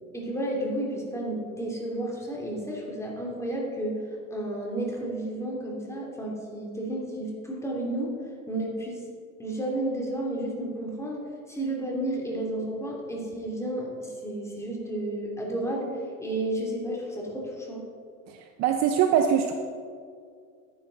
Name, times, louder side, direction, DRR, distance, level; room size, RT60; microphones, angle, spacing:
voice 1, 0.1-4.0 4.3-8.1 8.5-9.0 9.4-15.9 16.2-17.9, right 1 dB, 5° left, -3 dB, 2.8 m, -32 dB
voice 2, 18.3-19.5, right 8 dB, 40° right, 5 dB, 0.7 m, -23 dB
11.5 x 10.0 x 4.0 m, 2.2 s
supercardioid pair, 115°, 42 cm